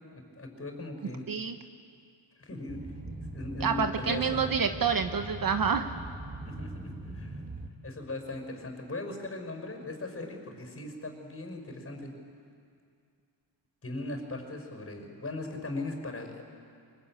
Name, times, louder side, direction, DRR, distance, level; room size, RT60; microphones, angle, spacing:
voice 1, 0.1-1.3 2.4-2.8 3.3-4.5 6.4-7.4 7.8-12.1 13.8-16.4, left 2 dB, 30° left, 4 dB, 5.6 m, -39 dB
Boat Water vehicle, 2.7-7.7, right 2 dB, 15° right, 2.1 m, -41 dB
voice 2, 3.6-5.9, right 6 dB, 45° right, 8 dB, 1.1 m, -28 dB
24.0 x 21.5 x 9.0 m, 2.3 s
cardioid pair, 85°, 48 cm